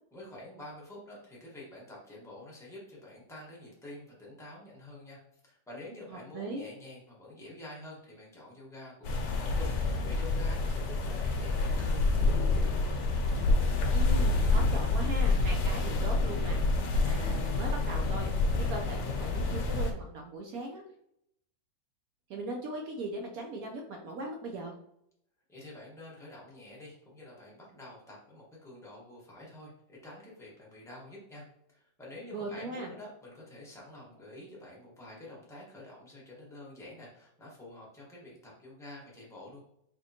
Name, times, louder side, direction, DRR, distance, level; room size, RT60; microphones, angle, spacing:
voice 1, 0.1-12.9 25.5-31.4 31.7-39.6, left 1 dB, ahead, -5 dB, 0.7 m, -48 dB
voice 2, 6.1-6.6 13.9-16.6 17.0-18.3 18.6-20.8 22.3-24.7 32.3-32.9, right 2 dB, 75° right, 2 dB, 0.8 m, -39 dB
sound 1, 9.0-19.9, left 3 dB, 75° left, 1.2 m, -28 dB
sound 2, 9.6-12.8 13.1-13.2, left 4 dB, 60° left, 0.9 m, -41 dB
4.1 x 3.0 x 2.7 m, 0.75 s
omnidirectional pair, 2.0 m